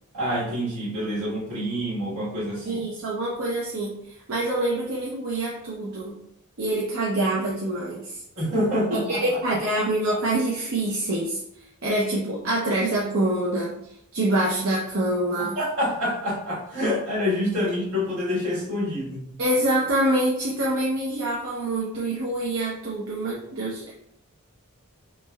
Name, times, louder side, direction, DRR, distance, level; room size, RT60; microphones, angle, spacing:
voice 1, 0.1-2.8 8.4-9.2 9.5-9.6 15.5-19.3, left 1 dB, 80° right, -7 dB, 1.3 m, -27 dB
voice 2, 2.6-6.2 6.6-8.2 8.9-11.4 11.8-13.7 14.1-15.6 19.4-23.9, right 1 dB, 65° right, -5 dB, 0.6 m, -25 dB
3.3 x 3.1 x 2.2 m, 0.74 s
head